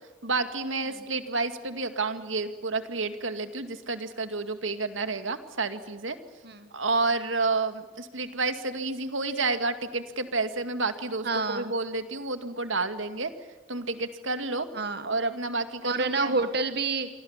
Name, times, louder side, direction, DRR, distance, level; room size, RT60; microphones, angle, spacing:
voice 1, 0.2-6.2 6.7-13.3 13.7-14.7 15.0-16.3, right 3 dB, 75° right, 9 dB, 2.2 m, -30 dB
voice 2, 11.2-11.7 14.7-15.1 15.8-17.1, right 3 dB, 50° right, 9 dB, 1.5 m, -28 dB
28.0 x 24.5 x 7.4 m, 1.4 s
head